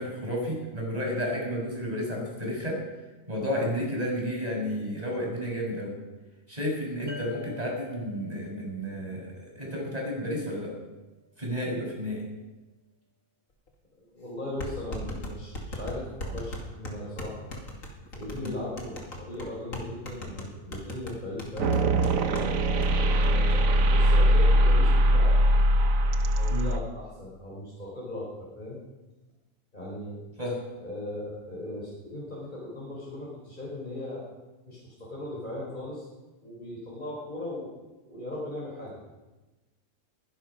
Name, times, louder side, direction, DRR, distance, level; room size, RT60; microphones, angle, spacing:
voice 1, 0.0-2.8 3.3-5.9 6.5-9.3 9.6-10.7 11.4-12.2 18.3-18.5 26.5-26.7 30.4-30.6, equal, 30° right, -2 dB, 6.1 m, -31 dB
sound 1, 7.1-10.5, left 3 dB, 65° right, 2.5 m, -47 dB
sound 2, 13.7-13.8 14.6-22.5 22.8-22.9 23.2-23.6, left 1 dB, 85° left, 2.9 m, -38 dB
voice 2, 14.0-17.5 18.1-22.4 23.2-25.3 26.3-28.8 29.7-30.2 30.8-34.2 34.6-36.1 36.4-37.7 38.1-39.0, left 1 dB, 35° left, -6 dB, 4.4 m, -38 dB
sound 3, 21.6-26.8, right 1 dB, 85° right, 1.4 m, -21 dB
21.5 x 11.0 x 5.7 m, 1.2 s
omnidirectional pair, 1.4 m